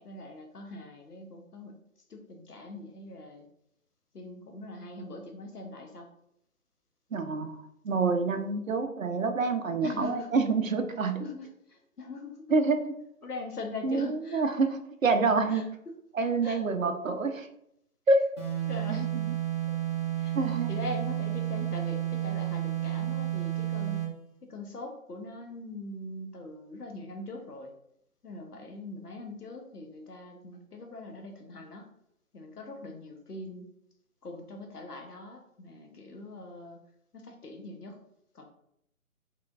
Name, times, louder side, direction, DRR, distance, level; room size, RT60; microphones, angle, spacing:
voice 1, 0.0-1.8 2.1-3.5 4.1-6.1 9.8-10.3 11.2-12.6 13.2-14.4 15.5-15.7 16.4-16.6 18.7-19.1 20.2-20.3 20.7-24.1 24.4-27.7 28.2-31.9 32.3-33.7 34.2-36.8 37.1-38.0 38.3-38.4, left 2 dB, 85° left, 3 dB, 0.7 m, -42 dB
voice 2, 7.1-11.2 12.5-12.8 13.8-15.7 16.1-17.5 18.1-18.3 18.9-19.3 20.3-20.7, right 3 dB, 60° right, 7 dB, 0.5 m, -27 dB
sound 1, 18.4-24.2, right 12 dB, 20° right, 0.9 m, -31 dB
3.6 x 3.3 x 2.3 m, 0.75 s
figure-of-eight pair, 150°, 45 cm